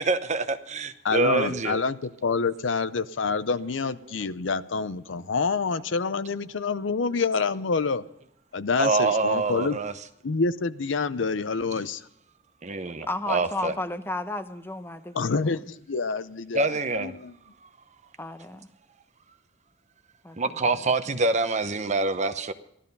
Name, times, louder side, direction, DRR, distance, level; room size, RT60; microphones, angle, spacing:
voice 1, 0.0-1.8 4.0-4.1 8.8-9.9 12.6-13.7 16.5-17.1 20.4-22.5, right 3 dB, 35° right, 0.9 m, -26 dB
voice 2, 1.0-8.0 8.5-9.8 10.2-12.0 15.2-17.3, left 4 dB, 70° left, 0.6 m, -27 dB
voice 3, 13.1-15.6 18.2-18.7 20.2-20.9, left 2 dB, 10° left, 0.9 m, -34 dB
15.5 x 13.0 x 5.4 m
head